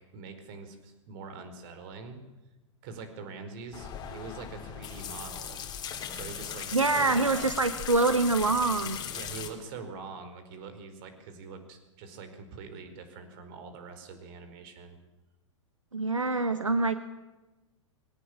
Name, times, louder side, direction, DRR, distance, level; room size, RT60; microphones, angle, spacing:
voice 1, 0.1-2.2 2.8-5.6 6.1-7.5 9.1-15.0, right 4 dB, 45° right, 8 dB, 4.7 m, -44 dB
sound 1, 3.7-9.5, left 8 dB, 25° left, 3.4 m, -38 dB
voice 2, 6.7-9.0 15.9-16.9, right 3 dB, 85° right, 10 dB, 1.3 m, -25 dB
21.5 x 18.5 x 8.8 m, 1.1 s
figure-of-eight pair, 100°, 16 cm